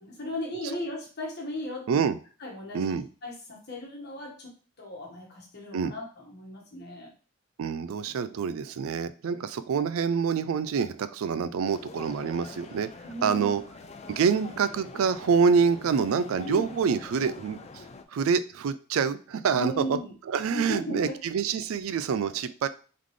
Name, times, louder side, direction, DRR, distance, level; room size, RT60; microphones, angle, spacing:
voice 1, 0.0-2.1 2.4-7.1 13.0-13.6 16.4-16.6 19.5-20.1 20.5-21.2, left 1 dB, 50° left, -2 dB, 1.4 m, -36 dB
voice 2, 2.7-3.1 5.7-5.9 7.6-12.9 13.2-13.6 14.1-17.9 18.1-20.0 20.3-22.7, right 6 dB, 70° right, 13 dB, 0.4 m, -26 dB
sound 1, 11.6-18.0, left 4 dB, 30° left, 0.3 m, -45 dB
3.8 x 3.7 x 3.2 m, 0.38 s
head